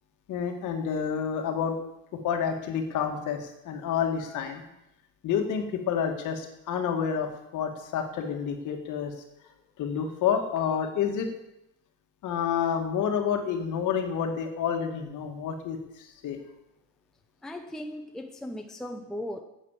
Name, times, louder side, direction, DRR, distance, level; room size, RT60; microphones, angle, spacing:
voice 1, 0.3-1.8 2.1-4.6 5.2-9.1 9.8-11.3 12.2-16.4, left 7 dB, 55° left, 4 dB, 2.1 m, -29 dB
voice 2, 17.4-19.4, left 1 dB, ahead, 4 dB, 0.7 m, -37 dB
11.0 x 8.3 x 7.5 m, 0.85 s
cardioid pair, 160°, 37 cm